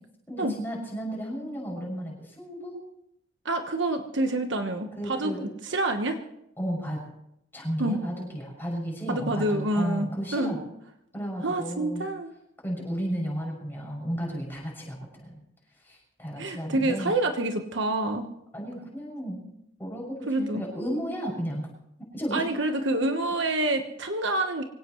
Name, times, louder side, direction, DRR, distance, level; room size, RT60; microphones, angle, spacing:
voice 1, 0.3-2.8 5.0-5.4 6.6-7.0 7.5-10.6 11.1-12.1 12.6-15.4 15.8-17.2 18.5-19.4 19.8-21.7 22.1-22.7, equal, 10° left, -2 dB, 6.6 m, -33 dB
voice 2, 3.4-6.2 7.8-8.0 9.1-10.5 11.4-12.3 16.4-18.3 20.3-20.6 22.3-24.6, right 2 dB, 60° right, 5 dB, 1.2 m, -27 dB
24.5 x 17.5 x 3.2 m, 0.78 s
head